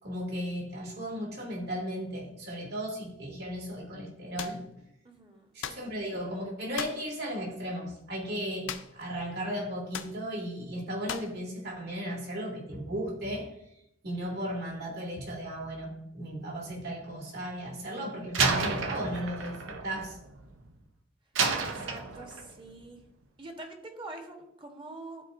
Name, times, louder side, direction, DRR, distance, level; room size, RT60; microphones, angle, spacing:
voice 1, 0.0-4.6 5.5-13.5 14.0-20.2, equal, 55° right, -2 dB, 2.2 m, -35 dB
sound 1, 4.4-4.6 5.6-5.9 6.8-7.1 8.7-9.1 9.3-9.4 9.9-10.2 11.1-11.4, left 8 dB, 75° left, 0.5 m, -38 dB
voice 2, 5.0-5.5 21.5-23.0 23.4-25.2, right 2 dB, 25° right, 3 dB, 1.1 m, -45 dB
Slam, 18.3-20.8 21.4-22.6, right 4 dB, 80° right, 0.8 m, -31 dB
12.5 x 4.4 x 2.6 m, 0.76 s
head